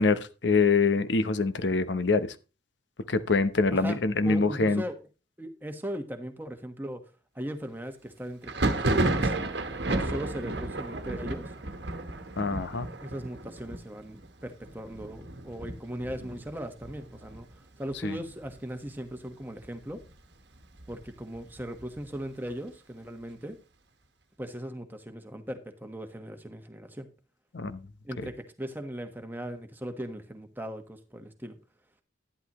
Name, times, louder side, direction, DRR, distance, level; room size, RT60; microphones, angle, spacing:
voice 1, 0.0-2.3 3.1-4.8 12.4-12.9 18.0-18.1 27.5-27.8, left 4 dB, 70° left, 0.8 m, -25 dB
voice 2, 3.7-5.0 5.4-7.0 7.3-9.4 9.8-11.5 13.0-17.5 17.8-20.0 20.9-23.6 24.4-27.1 28.0-31.6, equal, 10° right, 1.3 m, -38 dB
Thunder, 8.4-17.9 18.2-18.9 19.1-20.1 20.5-22.2, right 2 dB, 65° right, 1.3 m, -32 dB
11.5 x 11.0 x 3.0 m
head